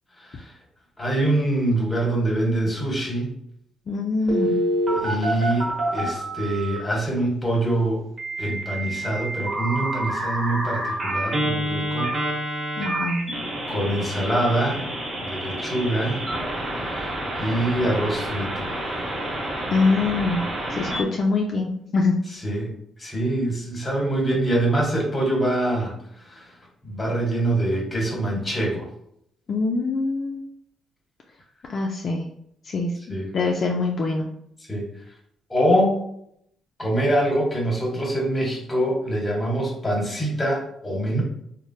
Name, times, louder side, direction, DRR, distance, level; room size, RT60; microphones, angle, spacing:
voice 1, 0.2-0.5 1.0-3.3 4.9-8.0 8.4-12.1 13.7-14.9 15.3-16.3 16.9-17.1 17.4-18.7 22.4-22.7 23.0-25.9 26.3-26.5 26.8-28.9 33.1-33.3 34.7-34.8 35.5-35.9 36.8-41.2, right 1 dB, 15° left, -1 dB, 1.1 m, -24 dB
voice 2, 3.9-4.6 12.8-13.2 19.7-20.4 20.7-22.1 29.5-30.4 31.7-32.3 32.6-34.2, left 3 dB, 50° left, 0 dB, 0.3 m, -24 dB
Telephone, 4.3-6.8 8.2-21.0, right 1 dB, 40° right, 1.2 m, -28 dB
3.0 x 2.1 x 2.6 m, 0.72 s
cardioid pair, 90°, 0 cm